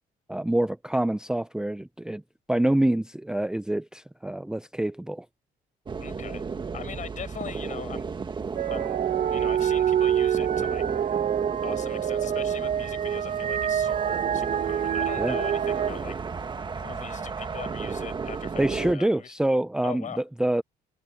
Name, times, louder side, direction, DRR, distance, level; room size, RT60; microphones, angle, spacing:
voice 1, 0.3-2.2 2.5-5.3 15.2-15.4 18.6-20.6, right 1 dB, 5° right, 0.6 m, -26 dB
sound 1, 5.9-18.9, right 5 dB, 25° right, 1.6 m, -35 dB
voice 2, 6.0-6.5 6.7-8.1 8.7-9.0 9.3-10.8 11.6-16.2 16.7-19.3 19.8-20.2, left 8 dB, 50° left, 6.1 m, -40 dB
sound 2, 8.6-15.9, right 9 dB, 50° right, 1.3 m, -26 dB
cardioid pair, 110°, 17 cm